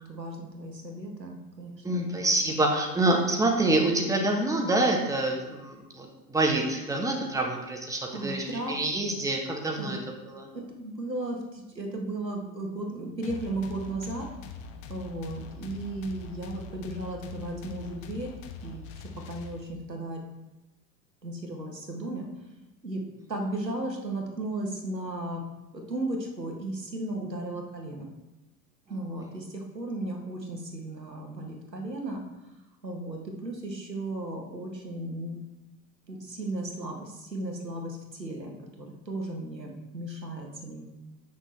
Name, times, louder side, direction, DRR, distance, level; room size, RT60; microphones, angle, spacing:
voice 1, 0.0-2.1 2.4-2.5 8.1-8.8 9.7-10.0 10.5-14.2 14.9-18.3 18.6-20.2 21.2-22.3 22.8-23.0 23.3-25.4 25.9-28.1 28.9-32.2 32.8-35.4 36.1-40.8, right 2 dB, 90° right, 1 dB, 1.6 m, -35 dB
voice 2, 1.8-10.0 10.2-10.4, right 2 dB, 5° right, 1 dB, 1.4 m, -26 dB
sound 1, 13.2-19.9, left 5 dB, 20° left, 0.3 m, -43 dB
8.2 x 6.2 x 4.4 m, 0.99 s
figure-of-eight pair, 85°, 49 cm